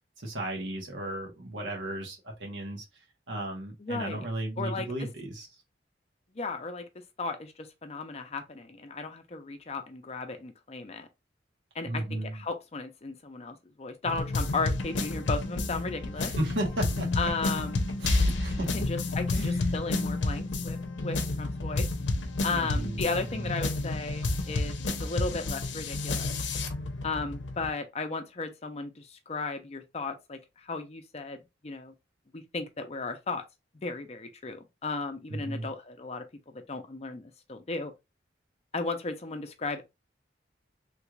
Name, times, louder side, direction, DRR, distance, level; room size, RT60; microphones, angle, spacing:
voice 1, 0.2-2.8 3.3-5.5 11.8-12.4 16.2-17.1 18.0-18.7 19.3-19.5 22.5-23.0 23.3-23.5 35.3-35.7, right 1 dB, 80° right, 1.3 m, -34 dB
voice 2, 3.8-4.3 4.6-5.1 6.4-6.9 7.2-11.1 11.7-16.3 17.2-17.8 18.6-21.9 22.4-26.4 27.0-31.9 32.3-33.4 33.8-36.2 36.5-37.9 38.7-39.8, left 3 dB, 35° left, 0.5 m, -35 dB
sound 1, 14.1-27.7, left 2 dB, 75° left, 0.6 m, -30 dB
3.2 x 2.4 x 3.0 m
head